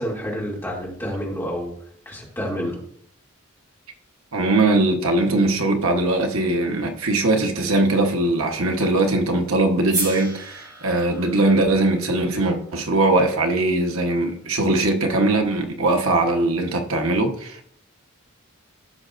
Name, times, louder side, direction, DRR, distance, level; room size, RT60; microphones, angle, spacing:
voice 1, 0.0-1.7 2.1-2.8, equal, 10° left, 2.4 m, -28 dB
voice 2, 4.3-17.6, right 2 dB, 75° right, 1.1 m, -21 dB
sound 1, 9.9-14.1, right 2 dB, 20° right, 3.1 m, -35 dB
15.0 x 6.5 x 2.5 m
head